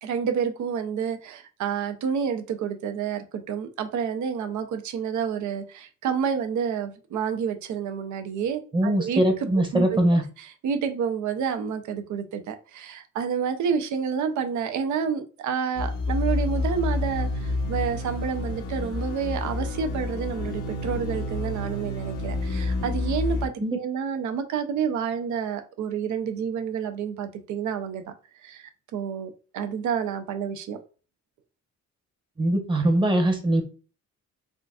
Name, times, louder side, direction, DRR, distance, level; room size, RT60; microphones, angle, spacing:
voice 1, 0.0-9.2 9.7-10.0 10.4-28.0 28.4-30.8, right 7 dB, 75° right, 7 dB, 0.6 m, -29 dB
voice 2, 8.7-10.2 23.6-23.8 32.4-33.6, right 1 dB, 15° right, 4 dB, 0.9 m, -22 dB
sound 1, 15.7-23.5, left 2 dB, 85° left, 0.8 m, -29 dB
3.8 x 2.4 x 2.3 m, 0.36 s
cardioid pair, 90°, 30 cm